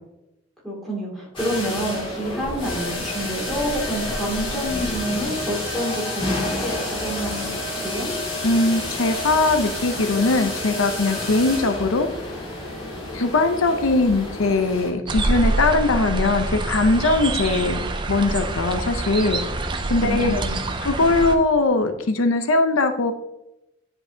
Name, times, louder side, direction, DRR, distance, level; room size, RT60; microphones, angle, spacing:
voice 1, 0.6-7.5 7.8-8.1 20.0-20.7, right 1 dB, ahead, -5 dB, 2.5 m, -28 dB
sound 1, 1.4-14.9, left 1 dB, 25° left, 2.2 m, -29 dB
voice 2, 8.4-12.1 13.1-19.4 19.9-20.4 20.8-23.1, left 2 dB, 85° left, 7 dB, 0.7 m, -20 dB
sound 2, 15.1-21.4, right 2 dB, 25° right, 0.5 m, -26 dB
9.9 x 5.3 x 2.8 m, 0.90 s
head